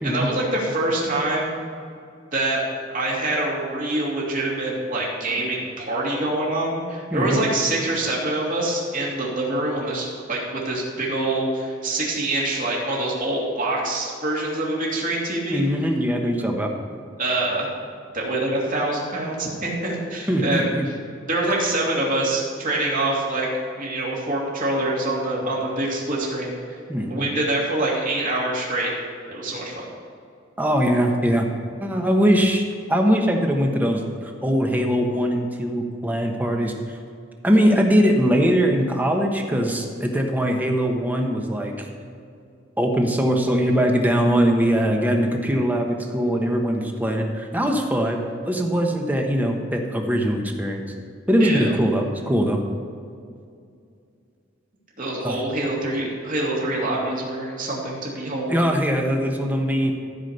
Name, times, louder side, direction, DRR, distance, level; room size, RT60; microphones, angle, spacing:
voice 1, 0.0-1.6 2.3-2.6 2.9-15.6 17.2-17.7 18.1-21.0 21.3-23.5 23.8-26.8 27.1-28.9 29.3-29.8 51.4-51.7 55.0-58.5, right 2 dB, 45° right, -4 dB, 2.8 m, -25 dB
voice 2, 15.5-16.7 20.3-20.9 26.9-27.3 30.6-31.5 31.8-32.6 32.9-36.7 37.4-41.9 42.8-48.2 48.5-50.8 51.3-52.6 55.2-55.4 58.5-59.9, equal, 10° right, 2 dB, 1.2 m, -21 dB
15.0 x 5.2 x 6.6 m, 2.4 s
head